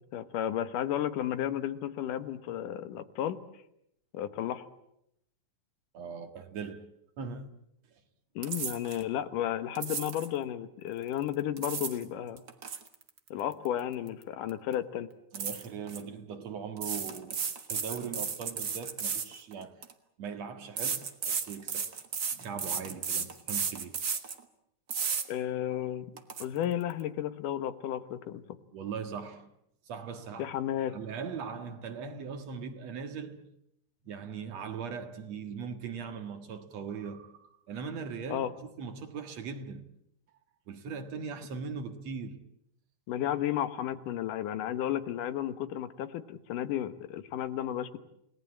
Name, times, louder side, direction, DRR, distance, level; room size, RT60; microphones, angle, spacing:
voice 1, 0.1-3.4 4.1-4.7 8.4-12.4 13.3-15.1 25.3-26.1 26.4-28.4 30.4-31.0 38.3-38.5 43.1-48.0, left 11 dB, 85° left, 2.8 m, -33 dB
voice 2, 5.9-6.9 7.2-7.5 15.3-17.4 17.7-19.8 20.2-21.9 22.3-24.0 28.7-29.5 29.9-30.5 30.9-33.5 34.0-39.8 40.7-42.4, right 6 dB, 60° right, 2.7 m, -40 dB
sound 1, 8.4-9.0 9.8-10.3 11.3-12.0 12.4-14.2 14.5-14.7 15.3-16.0 16.8-19.9 20.8-24.4 24.9-25.3 25.7-25.8 26.2-26.4, right 6 dB, 45° right, 1.4 m, -34 dB
29.5 x 18.5 x 8.7 m
omnidirectional pair, 3.6 m